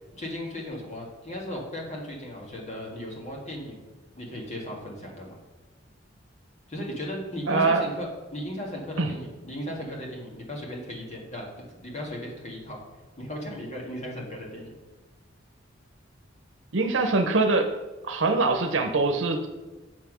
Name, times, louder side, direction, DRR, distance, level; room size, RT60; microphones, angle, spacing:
voice 1, 0.1-3.8 4.2-5.4 6.7-12.8 13.2-14.7, equal, 40° left, -2 dB, 1.9 m, -36 dB
voice 2, 7.5-7.8 9.0-9.1 16.7-17.7 18.0-19.5, right 3 dB, 85° right, 5 dB, 0.8 m, -23 dB
7.4 x 5.8 x 6.1 m, 1.2 s
head